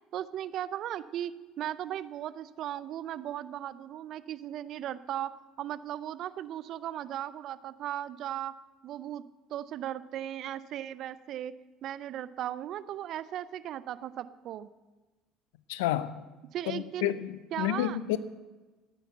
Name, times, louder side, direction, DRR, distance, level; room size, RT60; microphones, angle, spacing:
voice 1, 0.1-5.3 5.6-8.5 8.8-9.2 9.5-11.5 11.8-14.7 16.5-17.1 17.5-18.0, right 11 dB, 55° right, 0.6 m, -37 dB
voice 2, 15.7-16.2 16.7-18.2, left 13 dB, 75° left, 0.6 m, -30 dB
14.0 x 9.5 x 7.9 m
hypercardioid pair, 60°, 0 cm